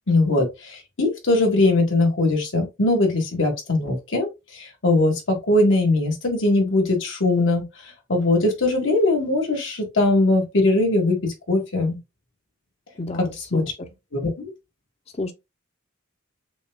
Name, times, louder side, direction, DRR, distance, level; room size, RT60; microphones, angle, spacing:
voice 1, 0.1-7.6 8.1-12.0 13.5-13.6 14.1-14.5, left 2 dB, 75° left, 1.5 m, -21 dB
voice 2, 13.0-13.6 15.2-15.3, left 2 dB, 35° left, 0.6 m, -30 dB
6.9 x 2.3 x 2.2 m
head